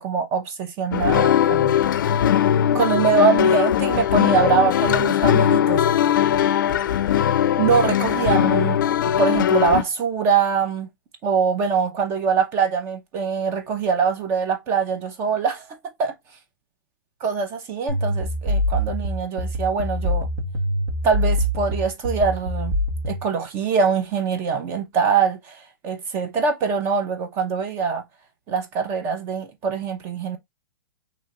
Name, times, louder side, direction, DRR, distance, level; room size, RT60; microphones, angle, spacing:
voice 1, 0.0-1.8 2.7-5.9 7.6-10.9 11.2-16.1 17.2-20.3 21.0-22.8 23.1-28.0 28.5-30.4, right 6 dB, 20° right, 0.5 m, -23 dB
sound 1, 0.9-9.8, left 10 dB, 70° left, 0.4 m, -19 dB
sound 2, 17.9-23.3, equal, 65° right, 1.3 m, -24 dB
2.9 x 2.3 x 4.0 m
hypercardioid pair, 160°, 11 cm